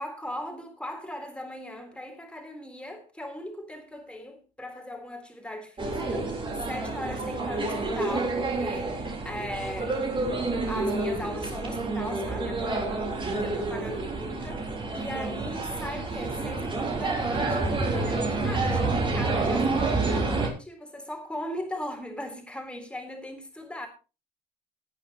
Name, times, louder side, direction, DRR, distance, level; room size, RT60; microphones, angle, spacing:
voice 1, 0.0-10.0 10.6-23.9, left 1 dB, 5° left, 3.9 m, -38 dB
sound 1, 5.8-20.5, right 3 dB, 30° right, 3.8 m, -28 dB
18.0 x 10.0 x 3.0 m
cardioid pair, 110°, 17 cm